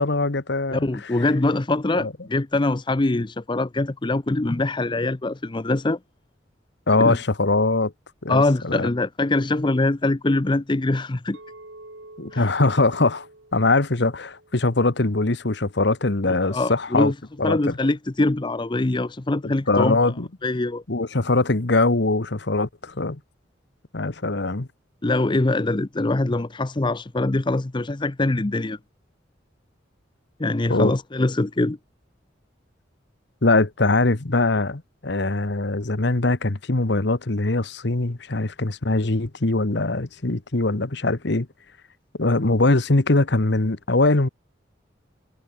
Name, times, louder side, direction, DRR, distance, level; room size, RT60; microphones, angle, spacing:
voice 1, 0.0-1.3 1.9-2.1 6.9-7.9 8.2-8.9 12.2-13.3 13.5-17.1 17.4-17.8 19.4-20.3 20.9-23.2 23.9-24.7 30.7-30.9 33.4-41.5 42.2-44.3, left 2 dB, 60° left, 1.3 m, -22 dB
voice 2, 0.7-6.0 7.0-7.2 8.3-11.4 12.3-12.5 16.3-17.1 17.4-20.1 20.4-20.8 25.0-28.8 30.4-31.8, left 2 dB, 25° left, 0.6 m, -23 dB
Chink clink, 11.3-15.6, right 2 dB, 85° right, 6.1 m, -48 dB
head